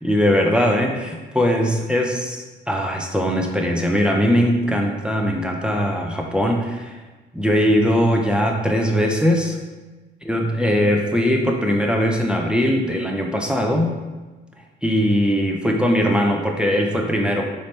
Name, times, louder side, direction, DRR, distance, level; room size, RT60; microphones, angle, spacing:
voice 1, 0.0-7.0 7.3-9.6 10.3-13.9 14.8-17.4, equal, 5° right, 1 dB, 0.5 m, -20 dB
4.3 x 3.0 x 3.2 m, 1.2 s
cardioid pair, 90°, 20 cm